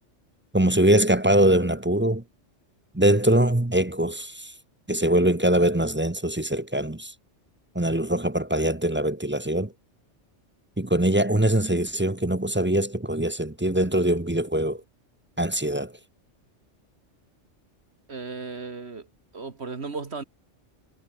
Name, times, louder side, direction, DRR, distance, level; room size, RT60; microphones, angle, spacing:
voice 1, 0.5-2.2 2.9-4.5 4.9-7.1 7.7-9.7 10.8-14.8 15.4-15.9, right 1 dB, 10° right, 0.9 m, -22 dB
voice 2, 18.1-19.1 19.3-20.2, right 4 dB, 60° right, 2.1 m, -35 dB
omnidirectional pair, 1.2 m